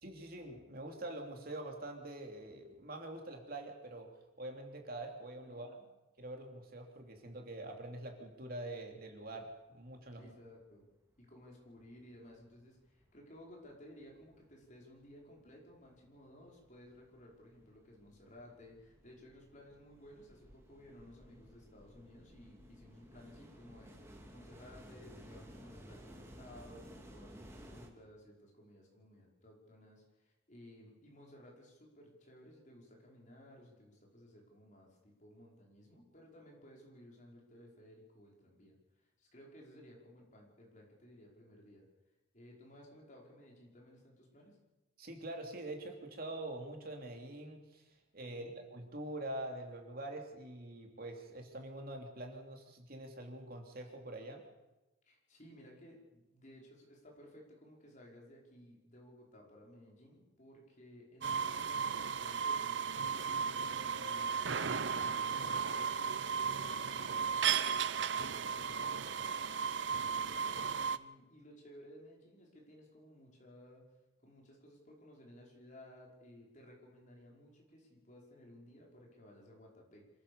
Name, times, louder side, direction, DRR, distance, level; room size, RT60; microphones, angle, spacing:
voice 1, 0.0-4.1 4.4-5.7 6.2-10.3 45.0-47.8 48.1-54.4, right 1 dB, 50° right, 3 dB, 3.2 m, -45 dB
voice 2, 5.5-5.8 10.1-10.9 11.2-41.9 42.3-44.6 48.3-48.5 55.0-70.4 70.9-73.9 74.2-80.1, left 1 dB, 40° left, -1 dB, 5.2 m, -57 dB
sound 1, 11.2-11.3 11.6-12.6 12.9-27.9, equal, 15° right, 2.6 m, -56 dB
sound 2, 61.2-71.0, right 6 dB, 65° right, 0.7 m, -35 dB
26.0 x 15.0 x 7.0 m, 1.0 s
head